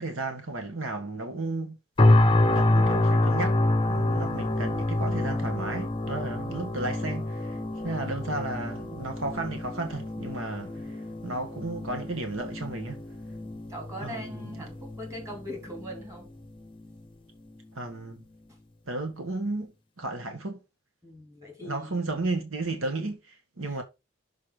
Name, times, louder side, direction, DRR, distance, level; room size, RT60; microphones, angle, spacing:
voice 1, 0.0-1.8 2.0-3.6 3.9-13.0 14.0-14.6 17.7-18.2 18.9-19.7 20.0-20.6 21.6-23.8, right 2 dB, 75° right, 1.4 m, -34 dB
sound 1, 2.0-17.0 17.5-17.7, left 2 dB, 25° left, 0.7 m, -27 dB
voice 2, 10.6-10.9 13.2-16.3 21.0-22.1 23.6-23.8, equal, 15° right, 3.1 m, -42 dB
6.3 x 4.8 x 5.0 m
head